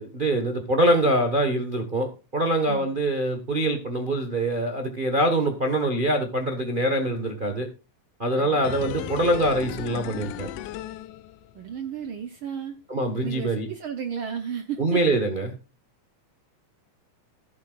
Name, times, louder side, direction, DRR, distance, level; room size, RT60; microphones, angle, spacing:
voice 1, 0.0-7.7 8.2-10.5 12.9-13.7 14.8-15.5, right 1 dB, 50° right, 5 dB, 0.6 m, -24 dB
sound 1, 8.6-11.8 12.1-12.2, left 12 dB, 90° left, 2.2 m, -35 dB
voice 2, 11.5-12.8 13.2-15.2, right 8 dB, 70° right, 8 dB, 1.2 m, -33 dB
13.0 x 11.5 x 2.5 m, 0.30 s
omnidirectional pair, 3.6 m